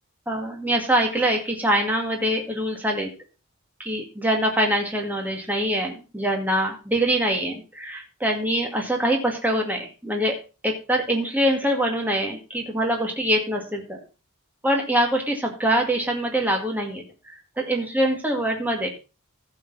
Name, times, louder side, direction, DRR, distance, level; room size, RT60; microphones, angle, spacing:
voice 1, 0.3-3.1 3.8-10.4 10.6-14.0 14.6-18.9, right 1 dB, 10° right, 1 dB, 2.1 m, -24 dB
15.0 x 7.0 x 4.0 m, 0.32 s
head